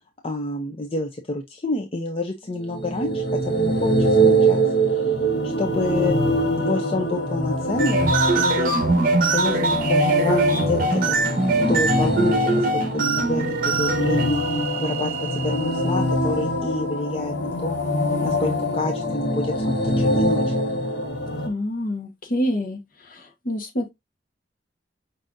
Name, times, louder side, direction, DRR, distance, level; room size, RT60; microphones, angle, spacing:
voice 1, 0.2-4.6 4.9-5.1 5.4-6.2 6.6-8.8 9.3-17.8 18.2-20.5, left 2 dB, 35° left, 0.6 m, -28 dB
sound 1, 2.7-21.5, right 1 dB, 85° left, 1.0 m, -23 dB
sound 2, 7.7-15.9, right 3 dB, 55° right, 1.0 m, -23 dB
voice 2, 21.4-22.8 23.1-23.9, left 1 dB, 55° left, 1.2 m, -27 dB
5.5 x 3.7 x 2.5 m
head